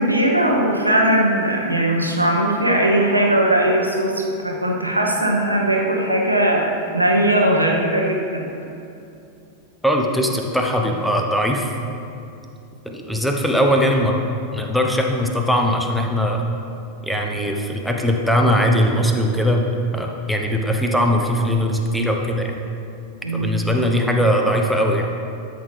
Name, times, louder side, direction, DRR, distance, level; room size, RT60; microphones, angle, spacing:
voice 1, 0.0-8.4 23.2-23.6, right 1 dB, 85° right, -1 dB, 1.1 m, -19 dB
voice 2, 9.8-11.7 12.8-14.2 14.5-16.4 17.0-22.5 23.3-25.1, equal, ahead, 1 dB, 0.9 m, -20 dB
12.0 x 6.8 x 3.3 m, 2.6 s
figure-of-eight pair, 90°, 0 cm